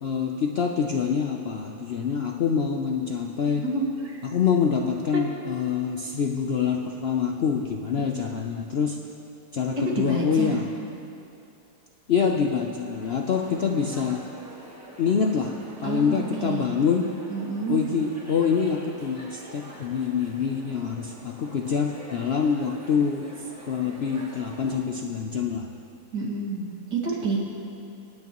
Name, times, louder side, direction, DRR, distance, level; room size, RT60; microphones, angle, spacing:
voice 1, 0.0-3.6 4.2-9.0 9.5-10.7 12.1-14.3 15.0-15.5 15.8-17.1 17.7-23.3 23.7-25.7, left 6 dB, 65° left, 2 dB, 0.6 m, -25 dB
voice 2, 3.6-4.2 5.1-5.2 9.9-10.6 15.8-16.8 17.3-17.8 26.1-27.4, right 3 dB, 85° right, -4 dB, 2.9 m, -29 dB
sound 1, 12.9-24.8, right 1 dB, 10° right, 1.2 m, -45 dB
27.0 x 9.5 x 3.0 m, 2.6 s
omnidirectional pair, 1.8 m